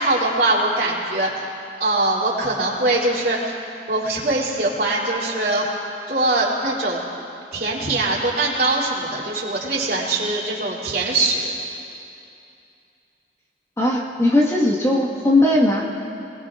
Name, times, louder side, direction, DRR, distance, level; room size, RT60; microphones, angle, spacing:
voice 1, 0.0-1.5 1.8-3.6 3.9-5.7 6.1-7.0 7.5-11.5, right 2 dB, 55° right, -4 dB, 3.1 m, -22 dB
voice 2, 13.8-15.8, left 1 dB, 15° left, -2 dB, 1.6 m, -18 dB
28.0 x 20.5 x 2.5 m, 2.7 s
head